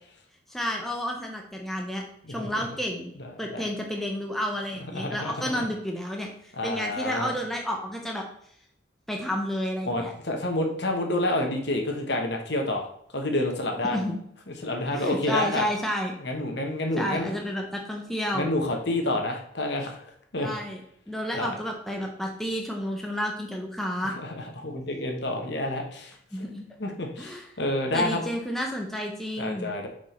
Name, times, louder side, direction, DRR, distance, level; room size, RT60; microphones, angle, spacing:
voice 1, 0.5-2.0 2.3-3.1 3.4-8.2 9.1-10.1 13.9-14.2 14.9-16.1 17.0-18.5 20.4-20.8 21.1-24.1 26.3-26.6 27.2-27.5 27.9-29.7, equal, ahead, 0 dB, 0.8 m, -31 dB
voice 2, 3.2-3.6 4.9-5.6 6.6-7.3 9.8-12.9 13.1-14.0 14.6-15.6 16.2-17.3 18.3-20.0 20.3-20.5 21.3-21.5 24.0-26.1 26.8-28.2 29.4-29.9, left 1 dB, 60° left, 2 dB, 1.3 m, -29 dB
6.2 x 5.0 x 4.4 m, 0.68 s
head